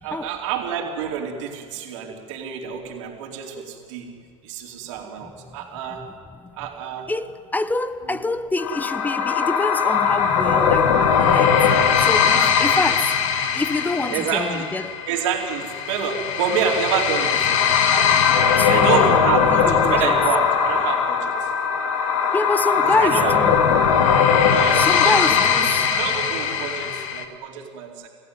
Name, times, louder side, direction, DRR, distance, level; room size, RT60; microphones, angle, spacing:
voice 1, 0.0-4.1 4.4-6.0 6.6-7.1 8.0-8.2 12.4-12.5 14.1-14.7 15.1-17.6 18.7-21.5 22.8-23.4 24.5-28.1, right 7 dB, 70° right, 4.4 m, -28 dB
voice 2, 7.1-11.6 12.0-15.0 18.6-19.2 19.5-20.2 22.3-23.7 24.7-26.0, left 2 dB, 10° left, 1.1 m, -26 dB
sound 1, 8.6-27.2, left 7 dB, 75° left, 2.5 m, -20 dB
29.5 x 15.5 x 9.4 m
hypercardioid pair, 95°, 17 cm